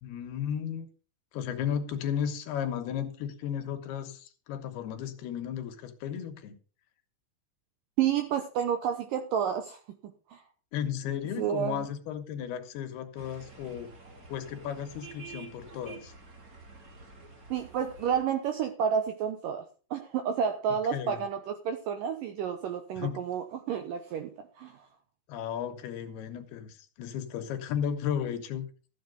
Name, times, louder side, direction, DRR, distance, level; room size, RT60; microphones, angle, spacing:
voice 1, 0.0-0.9 1.3-6.5 10.7-13.9 14.3-16.1 20.9-21.2 23.0-23.2 25.3-28.7, left 9 dB, 75° left, 3.1 m, -34 dB
voice 2, 8.0-9.8 10.3-10.4 11.4-11.8 17.5-19.6 19.9-24.3 24.6-24.8, right 8 dB, 75° right, 2.0 m, -30 dB
sound 1, 13.1-18.2, right 4 dB, 35° right, 1.6 m, -49 dB
13.5 x 7.8 x 5.2 m
omnidirectional pair, 4.9 m